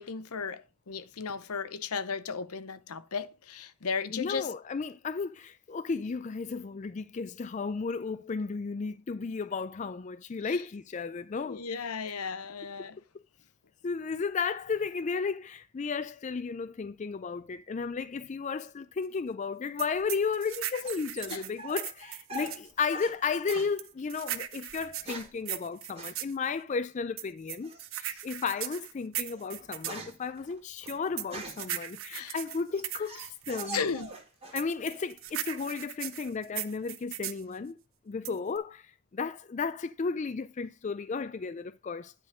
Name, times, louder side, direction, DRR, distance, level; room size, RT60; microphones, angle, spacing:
voice 1, 0.0-4.5 10.5-10.6 11.4-13.0 21.3-21.4 32.1-32.3 33.7-34.1, left 5 dB, 80° left, 0.8 m, -35 dB
voice 2, 4.1-12.1 13.8-33.8 34.5-37.8 38.1-42.1, left 5 dB, 35° left, 0.3 m, -34 dB
sound 1, 19.8-22.7 23.5-26.3 27.2-30.0 30.9-33.7 34.5-37.4 38.2-38.6, right 12 dB, 60° right, 0.7 m, -38 dB
sound 2, 19.9-23.2 23.5-23.8 24.7-25.4 25.9-26.2 27.6-28.0 28.6-28.7 29.1-31.8 32.3-34.6 34.9-35.5, right 2 dB, 25° right, 2.1 m, -44 dB
10.0 x 3.8 x 6.1 m
head